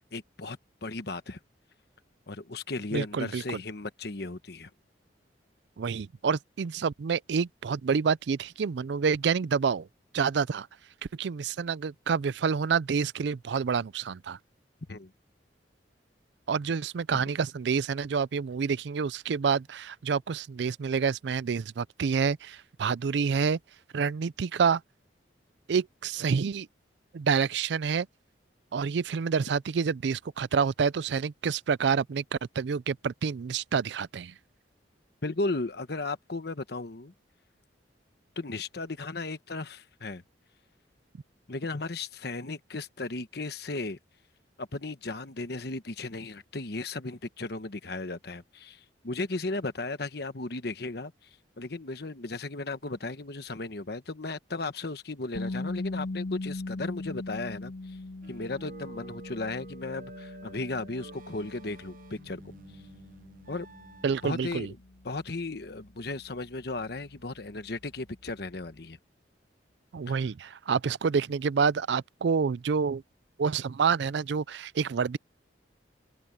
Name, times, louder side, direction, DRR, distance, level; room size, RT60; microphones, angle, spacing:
voice 1, 0.1-1.4 2.3-4.7 14.9-15.1 17.1-17.2 35.2-37.1 38.4-40.2 41.5-44.0 44.6-51.1 51.6-58.0 58.3-62.5 63.5-63.7 64.2-64.8 65.0-69.0 70.1-70.2, left 3 dB, 60° left, 1.1 m, -35 dB
voice 2, 2.9-3.6 5.8-9.9 10.1-10.7 11.2-14.4 16.5-23.6 23.9-24.8 25.7-26.7 27.1-28.1 28.7-32.2 32.6-34.3 64.0-64.7 69.9-73.0 73.4-75.2, right 6 dB, 70° right, 0.4 m, -28 dB
sound 1, 55.3-67.2, left 2 dB, 80° left, 1.9 m, -40 dB
sound 2, 58.2-64.6, right 3 dB, 50° right, 0.8 m, -50 dB
head